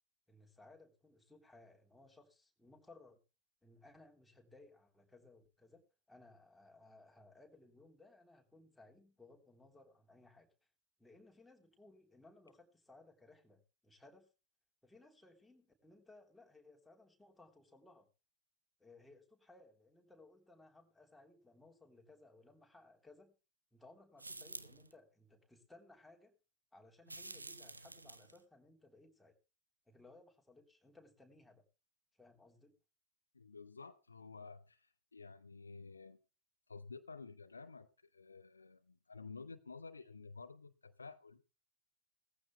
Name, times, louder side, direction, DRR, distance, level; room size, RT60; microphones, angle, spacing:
voice 1, 0.3-3.2 3.6-10.5 11.0-14.3 14.8-18.1 18.8-23.3 23.7-26.3 26.7-29.4 29.9-31.6 32.2-32.7, left 2 dB, 5° left, 1 dB, 3.4 m, -62 dB
sound 1, 24.2-24.9 27.1-28.4, right 2 dB, 80° right, 1.0 m, -50 dB
voice 2, 33.3-36.2 36.7-41.4, left 4 dB, 75° left, 10 dB, 1.0 m, -52 dB
19.0 x 15.0 x 2.2 m, 0.31 s
figure-of-eight pair, 90°, 0 cm